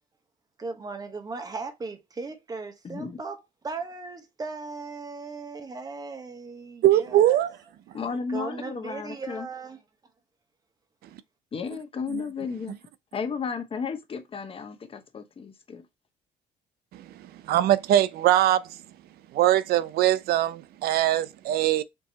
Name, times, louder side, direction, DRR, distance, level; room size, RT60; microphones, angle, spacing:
voice 1, 0.6-7.4 8.3-9.8, right 4 dB, 20° right, 0.9 m, -37 dB
voice 2, 2.8-3.2 7.9-9.5 11.5-12.8 13.1-15.8, left 5 dB, 35° left, 0.9 m, -33 dB
voice 3, 6.8-7.6 12.1-12.2 16.9-17.0 17.5-18.7 19.3-21.8, right 13 dB, 70° right, 0.4 m, -22 dB
4.6 x 2.8 x 2.8 m
cardioid pair, 110°, 17 cm